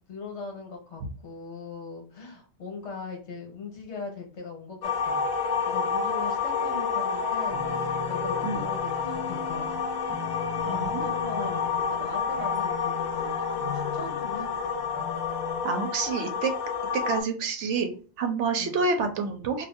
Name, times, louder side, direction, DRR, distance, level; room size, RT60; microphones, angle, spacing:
voice 1, 0.1-5.2 5.7-9.9 10.7-14.6 18.6-18.8, left 4 dB, 65° left, 2 dB, 1.1 m, -40 dB
sound 1, 4.8-17.2, left 5 dB, 85° left, 0.4 m, -29 dB
sound 2, 7.4-15.6, left 5 dB, 35° right, 0.8 m, -40 dB
voice 2, 10.7-11.0 15.6-16.5 16.9-17.9 18.2-19.7, right 4 dB, 75° right, 6 dB, 0.9 m, -28 dB
2.6 x 2.4 x 3.5 m, 0.39 s
omnidirectional pair, 1.3 m